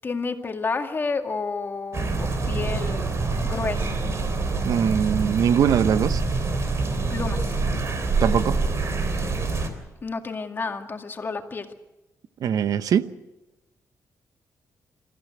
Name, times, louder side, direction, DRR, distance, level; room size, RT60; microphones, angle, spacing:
voice 1, 0.0-4.0 7.1-7.5 10.0-11.7, left 4 dB, 35° left, 5 dB, 2.1 m, -30 dB
sound 1, 1.9-9.7, right 3 dB, 50° right, 3.4 m, -26 dB
voice 2, 4.6-6.2 8.2-8.6 12.4-13.1, right 8 dB, 75° right, 13 dB, 1.0 m, -21 dB
27.0 x 14.5 x 8.0 m, 1.0 s
cardioid pair, 115°, 6 cm